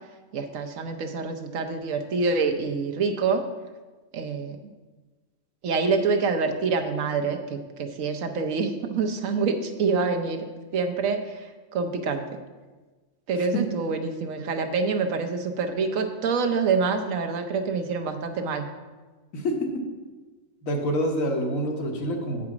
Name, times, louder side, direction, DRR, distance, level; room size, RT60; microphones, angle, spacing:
voice 1, 0.3-3.4 4.1-4.6 5.6-10.4 10.7-12.2 13.3-18.7, right 4 dB, 80° right, 5 dB, 1.2 m, -26 dB
voice 2, 19.3-19.7 20.6-22.4, equal, 80° left, 2 dB, 1.6 m, -26 dB
8.5 x 4.9 x 6.0 m, 1.3 s
omnidirectional pair, 1.4 m